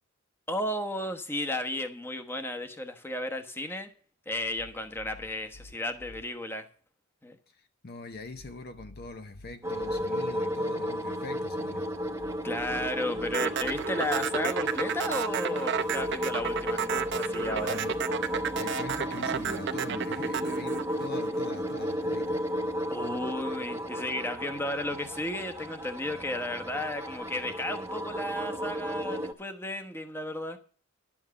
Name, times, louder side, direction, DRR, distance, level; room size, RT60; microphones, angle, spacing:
voice 1, 0.5-3.9 4.3-6.7 7.2-7.3 12.4-17.8 22.9-30.6, left 1 dB, 10° left, 1.1 m, -34 dB
sound 1, 4.3-6.2 8.1-10.0 11.9-13.8 15.7-19.5, left 2 dB, 60° left, 1.7 m, -52 dB
voice 2, 7.5-11.9 17.6-18.0 18.6-22.5, left 3 dB, 45° left, 0.7 m, -42 dB
sound 2, 9.6-29.3, equal, 15° right, 0.9 m, -33 dB
sound 3, 13.3-21.7, right 8 dB, 55° right, 0.8 m, -32 dB
11.0 x 7.3 x 6.9 m
head